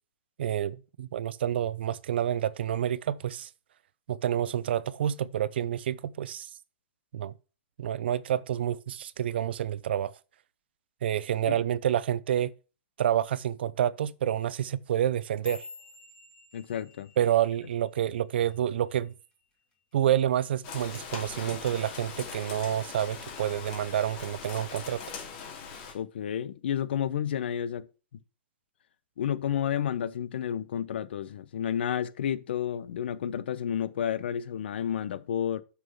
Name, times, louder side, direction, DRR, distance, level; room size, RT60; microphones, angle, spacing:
voice 1, 0.4-3.5 4.1-6.5 7.1-7.3 7.8-10.1 11.0-12.5 13.0-15.7 17.2-19.1 19.9-25.0, right 10 dB, 75° right, 0.5 m, -28 dB
sound 1, 15.0-19.4 19.7-20.1 20.5-20.9 21.3-21.5 22.1-22.5 22.9-23.7 24.1-24.5 25.3-25.4, left 3 dB, 15° left, 2.4 m, -49 dB
voice 2, 16.5-17.1 25.9-27.9 29.2-35.6, left 9 dB, 75° left, 0.8 m, -31 dB
Rain, 20.6-25.9, left 6 dB, 35° left, 2.5 m, -41 dB
6.4 x 6.1 x 5.5 m
supercardioid pair, 165°, 6 cm